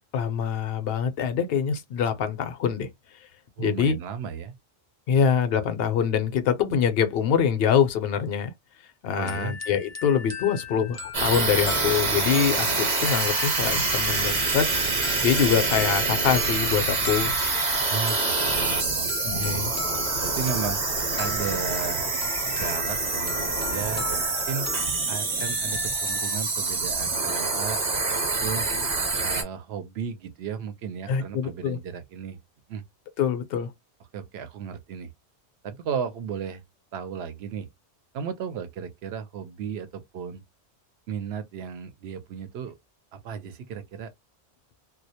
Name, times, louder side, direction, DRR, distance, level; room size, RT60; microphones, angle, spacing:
voice 1, 0.1-2.9 3.6-4.0 5.1-8.5 9.0-14.7 15.2-17.3 19.2-19.7 31.1-31.8 33.2-33.7, left 7 dB, 65° left, 0.8 m, -24 dB
voice 2, 3.6-4.5 9.2-9.5 17.9-19.7 20.2-20.8 21.2-22.1 22.6-24.7 25.1-28.7 29.2-32.4 32.7-32.8 34.1-35.1 35.6-36.6 36.9-37.7 38.1-40.4 41.1-42.8 43.2-44.1, right 7 dB, 75° right, 0.8 m, -34 dB
sound 1, 9.2-26.4, left 5 dB, 25° left, 0.3 m, -39 dB
sound 2, 11.1-29.4, right 3 dB, 45° right, 0.8 m, -26 dB
2.2 x 2.0 x 2.7 m
omnidirectional pair, 1.1 m